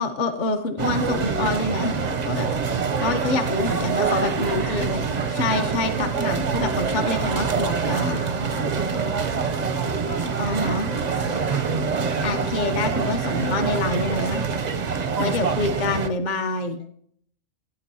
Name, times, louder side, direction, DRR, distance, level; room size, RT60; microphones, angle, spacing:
voice 1, 0.0-2.0 2.2-2.5 3.0-5.0 5.3-8.3 10.4-10.9 12.2-14.4 15.2-16.8, left 2 dB, 45° left, 5 dB, 0.8 m, -26 dB
sound 1, 0.8-16.1, right 5 dB, 45° right, 0.6 m, -25 dB
voice 2, 3.0-4.9 8.9-12.3 15.0-15.8, left 1 dB, 85° left, -2 dB, 3.7 m, -44 dB
16.5 x 8.9 x 2.7 m, 0.64 s
omnidirectional pair, 1.4 m